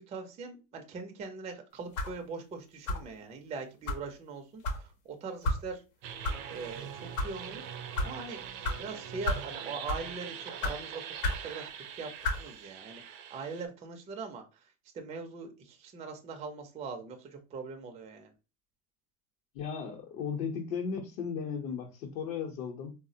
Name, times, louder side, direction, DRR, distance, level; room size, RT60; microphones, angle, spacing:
voice 1, 0.0-5.8 6.5-7.6 8.0-8.4 8.7-14.4 14.9-18.3, right 4 dB, 15° right, 0.4 m, -42 dB
sound 1, 1.9-2.2 2.9-3.1 3.9-4.0 4.6-4.8 5.4-5.6 6.2-6.4 7.0-7.3 7.9-8.1 8.6-8.8 9.2-9.5 9.8-10.1 10.6-10.8 11.2-11.4 12.2-12.4, left 2 dB, 85° left, 0.8 m, -31 dB
sound 2, 6.0-13.7, right 8 dB, 70° right, 0.6 m, -43 dB
voice 2, 19.5-22.9, left 6 dB, 55° left, 0.7 m, -36 dB
3.4 x 2.0 x 2.6 m
hypercardioid pair, 105°, 42 cm